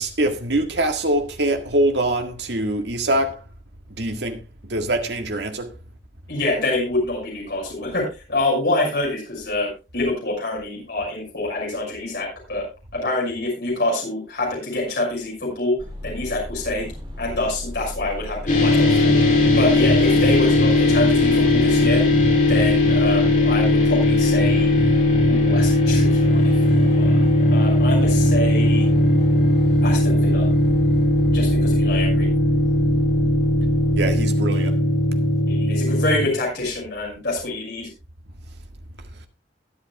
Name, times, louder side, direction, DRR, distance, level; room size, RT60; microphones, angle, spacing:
voice 1, 0.0-3.4 4.0-4.4 4.7-5.7 25.1-25.4 33.9-34.7, right 1 dB, 70° right, 1.7 m, -23 dB
voice 2, 6.3-12.7 12.9-15.8 16.0-16.9 17.2-19.2 19.5-22.0 22.5-24.7 25.3-27.2 27.5-28.9 29.8-30.5 31.3-32.3 35.5-37.9, left 2 dB, 65° left, 6.1 m, -26 dB
sound 1, 15.8-34.2, equal, 25° right, 2.4 m, -34 dB
sound 2, 18.5-36.3, left 1 dB, 45° left, 3.2 m, -18 dB
22.0 x 8.2 x 2.3 m
head